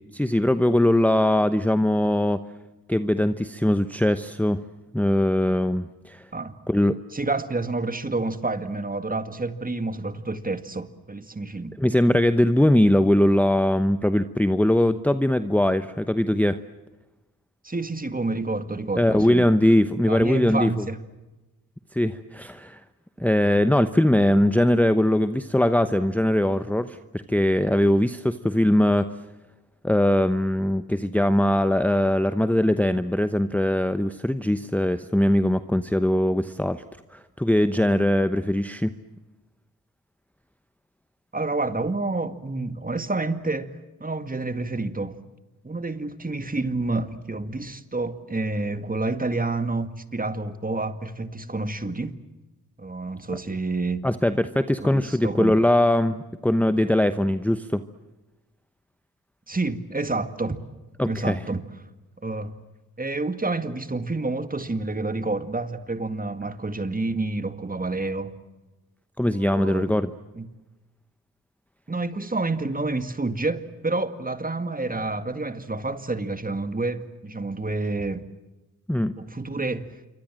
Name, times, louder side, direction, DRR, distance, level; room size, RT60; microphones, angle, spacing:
voice 1, 0.1-2.4 2.9-4.6 4.9-6.3 6.7-6.9 11.8-16.6 19.0-20.8 21.9-22.8 23.2-29.1 29.8-36.8 37.1-38.9 54.0-57.8 61.0-61.4 69.2-70.1 78.9-79.1, left 1 dB, 5° left, 0.9 m, -21 dB
voice 2, 7.1-11.8 17.6-19.4 20.1-21.0 41.3-43.7 44.0-45.2 45.6-52.2 52.8-54.0 54.8-55.5 59.5-60.6 61.0-61.6 62.2-62.6 63.0-68.3 69.3-69.9 70.4-70.5 71.9-78.2 79.2-79.9, right 2 dB, 25° right, 2.1 m, -29 dB
27.0 x 24.0 x 7.6 m
cardioid pair, 70°, 37 cm